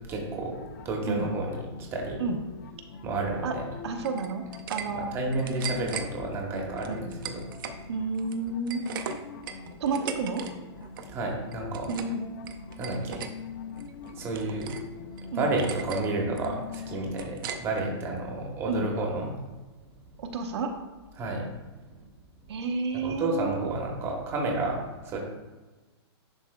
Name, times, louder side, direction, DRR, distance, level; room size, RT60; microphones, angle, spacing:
voice 1, 0.1-0.6 0.8-1.6 1.9-2.2 3.0-3.7 4.9-7.4 11.1-11.9 12.8-13.2 14.1-14.8 15.1-19.3 21.2-22.0 23.0-25.2, right 2 dB, 15° right, 0 dB, 0.9 m, -31 dB
sound 1, 0.5-17.3, left 6 dB, 45° left, 0.4 m, -43 dB
voice 2, 3.8-4.4 4.7-5.1 6.9-7.1 7.9-8.8 9.8-10.4 11.9-12.3 15.3-15.5 18.7-18.9 20.2-20.7 22.5-23.7, right 4 dB, 75° right, 4 dB, 0.8 m, -30 dB
sound 2, 4.0-4.9 5.2-6.1 6.8-7.8 8.1-10.5 10.8-11.1 11.5-12.2 12.5-13.3 13.8-14.9 15.2-15.3 15.6-16.1 16.4-17.9, right 8 dB, 50° right, 0.6 m, -38 dB
10.5 x 4.1 x 2.2 m, 1.2 s
hypercardioid pair, 165°, 14 cm